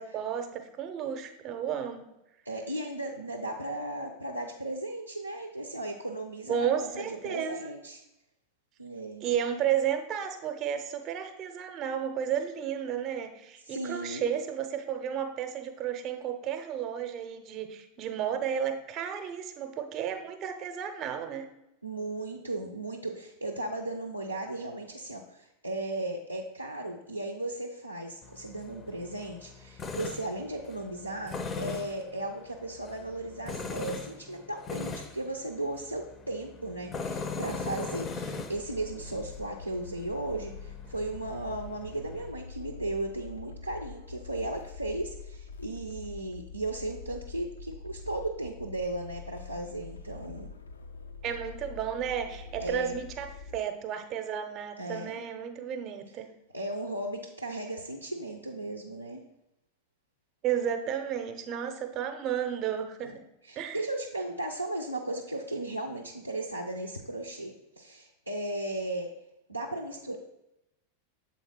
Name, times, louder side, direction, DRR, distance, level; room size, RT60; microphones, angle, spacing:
voice 1, 0.0-2.1 6.5-7.5 9.2-21.5 51.2-56.3 60.4-63.2 63.6-63.8, right 9 dB, 35° right, 7 dB, 0.7 m, -33 dB
voice 2, 2.5-8.0 8.8-9.3 13.7-14.3 21.8-50.5 52.6-53.0 54.8-55.2 56.5-59.2 63.0-63.2 63.4-69.1 69.5-70.2, right 2 dB, 85° right, 1 dB, 0.5 m, -36 dB
Tools, 28.2-42.3, left 4 dB, 20° left, 0.5 m, -40 dB
sound 1, 38.5-53.6, left 4 dB, 70° left, 0.4 m, -45 dB
7.1 x 3.9 x 4.2 m, 0.90 s
figure-of-eight pair, 90°, 0 cm